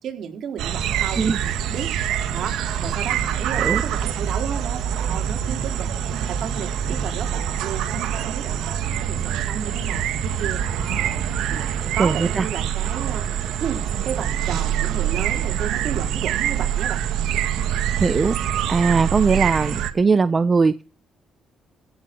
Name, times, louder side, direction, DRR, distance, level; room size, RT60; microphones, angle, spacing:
voice 1, 0.0-1.9 2.3-5.9 6.3-11.1 11.5-11.6 11.9-17.1, right 8 dB, 65° right, 4 dB, 4.4 m, -33 dB
sound 1, 0.6-19.9, right 9 dB, 85° right, 1.8 m, -25 dB
voice 2, 12.0-12.5 18.0-18.4 18.7-20.8, right 4 dB, 35° right, 13 dB, 0.9 m, -19 dB
16.5 x 6.9 x 8.0 m, 0.37 s
cardioid pair, 90°, 0 cm